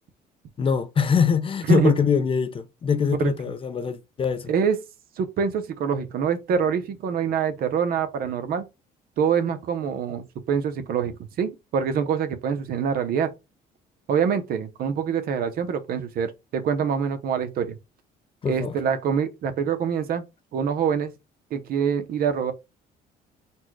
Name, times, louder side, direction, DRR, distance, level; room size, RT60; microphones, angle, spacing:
voice 1, 0.6-4.5 18.4-18.8, left 6 dB, 30° left, 0.5 m, -23 dB
voice 2, 5.2-8.6 9.2-13.3 14.1-17.8 18.5-20.2 20.5-21.1 21.5-22.5, right 7 dB, 60° right, 0.8 m, -25 dB
4.2 x 2.2 x 4.6 m
cardioid pair, 110°, 17 cm